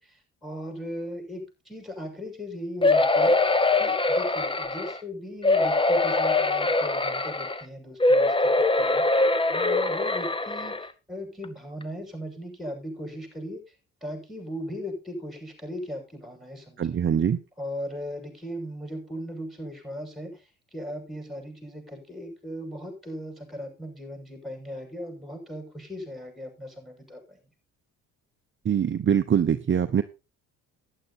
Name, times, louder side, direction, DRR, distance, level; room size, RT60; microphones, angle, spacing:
voice 1, 0.0-3.4 3.8-13.6 14.0-17.0 17.6-20.4 20.7-27.4, equal, ahead, 3 dB, 6.4 m, -38 dB
sound 1, 2.8-5.0 5.4-7.6 8.0-10.9 11.4-11.5 11.8-11.9, left 2 dB, 15° left, 1.0 m, -23 dB
voice 2, 16.8-17.4 28.6-30.0, right 8 dB, 35° right, 9 dB, 0.8 m, -23 dB
11.5 x 10.0 x 4.2 m, 0.29 s
supercardioid pair, 75°, 34 cm